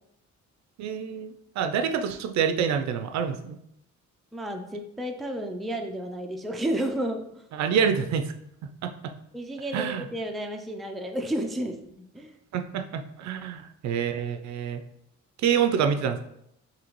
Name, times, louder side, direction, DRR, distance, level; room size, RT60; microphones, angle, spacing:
voice 1, 0.8-3.6 7.5-8.3 8.8-8.9 9.7-10.1 12.5-14.8 15.4-16.2, right 7 dB, 65° right, 7 dB, 0.4 m, -27 dB
voice 2, 4.3-7.4 9.3-12.4, right 1 dB, ahead, 3 dB, 0.3 m, -32 dB
3.9 x 2.8 x 3.0 m, 0.75 s
cardioid pair, 90°, 30 cm